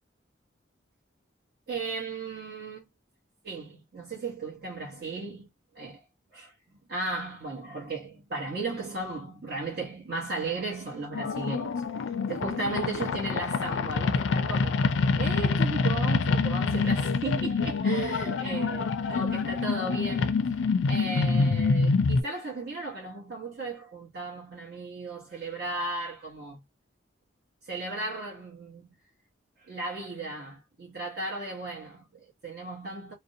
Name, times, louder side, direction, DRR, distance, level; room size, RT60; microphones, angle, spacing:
voice 1, 1.7-2.8 3.4-5.5 5.7-6.0 6.3-6.5 6.9-11.7 12.3-14.8 15.2-20.4 20.9-26.6 27.6-28.9 29.6-33.1, right 3 dB, 55° right, 0.9 m, -35 dB
sound 1, 11.1-22.2, left 4 dB, 75° left, 0.4 m, -26 dB
2.5 x 2.0 x 2.6 m
head